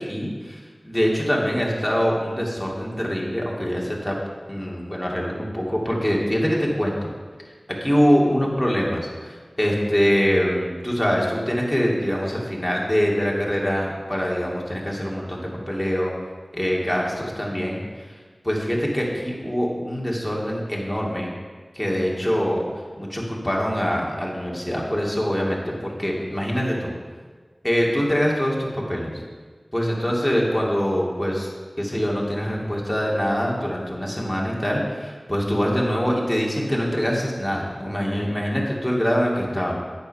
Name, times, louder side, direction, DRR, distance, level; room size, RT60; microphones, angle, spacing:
voice 1, 0.0-4.2 4.5-7.1 7.8-16.1 16.5-18.1 18.4-21.3 21.7-22.6 23.0-26.9 27.6-29.2 29.7-31.5 31.8-39.8, equal, 10° left, -3 dB, 2.5 m, -24 dB
8.8 x 8.2 x 5.7 m, 1.5 s
wide cardioid pair, 45°, 0 cm